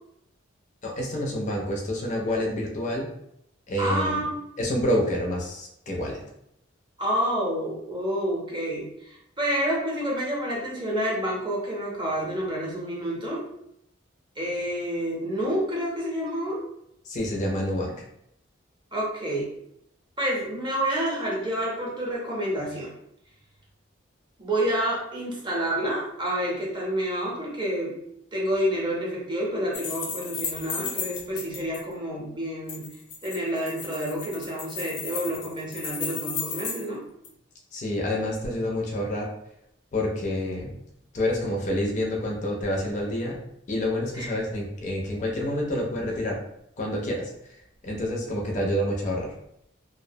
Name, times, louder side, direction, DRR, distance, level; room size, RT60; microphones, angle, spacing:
voice 1, 0.8-3.1 3.7-4.2 4.6-6.2 17.1-18.1 37.7-39.3 39.9-40.8 41.1-43.4 43.7-46.4 46.8-49.3, left 1 dB, 40° left, -1 dB, 0.4 m, -28 dB
voice 2, 3.8-4.4 7.0-13.4 14.4-16.6 18.9-19.5 20.2-22.9 24.4-27.9 28.3-32.8 33.2-37.0 44.1-44.3, equal, 25° right, -3 dB, 0.6 m, -28 dB
sound 1, 29.7-31.8 32.7-36.9 37.2-37.3, left 5 dB, 90° left, 0.5 m, -34 dB
2.3 x 2.1 x 2.6 m, 0.76 s
head